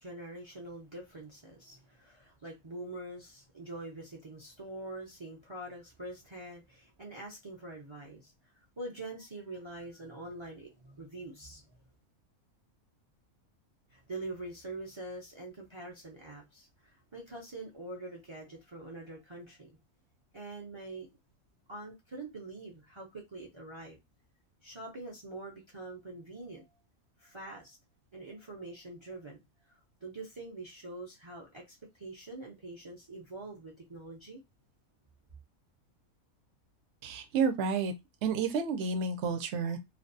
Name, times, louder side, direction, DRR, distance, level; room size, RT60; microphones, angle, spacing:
voice 1, 0.0-11.8 13.9-19.7 20.3-21.1 21.7-24.0 24.6-26.6 27.2-27.8 28.1-34.4, right 2 dB, 45° right, 0.3 m, -45 dB
voice 2, 37.0-37.9 38.2-39.8, right 5 dB, 65° right, 0.8 m, -30 dB
2.4 x 2.2 x 2.6 m
omnidirectional pair, 1.5 m